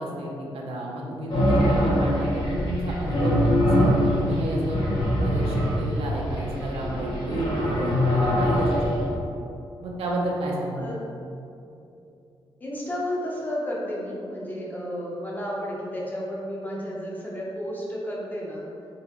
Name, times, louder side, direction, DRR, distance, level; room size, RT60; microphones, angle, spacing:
voice 1, 0.0-4.8 5.2-9.2 9.8-10.9, right 1 dB, 90° right, -2 dB, 0.7 m, -31 dB
sound 1, 1.3-9.0, equal, 55° left, 1.1 m, -23 dB
voice 2, 12.6-18.6, equal, 20° left, -4 dB, 0.8 m, -32 dB
3.9 x 3.8 x 3.0 m, 2.7 s
wide cardioid pair, 145°, 10 cm